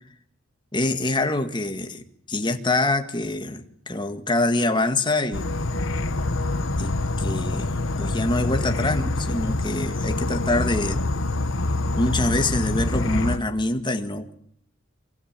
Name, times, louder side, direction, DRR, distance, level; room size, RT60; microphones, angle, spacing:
voice 1, 0.7-5.4 6.8-11.0 12.0-14.3, left 2 dB, 20° left, 1.8 m, -25 dB
Insect / Frog, 5.3-13.4, left 2 dB, 65° left, 1.5 m, -26 dB
24.5 x 24.0 x 8.9 m
head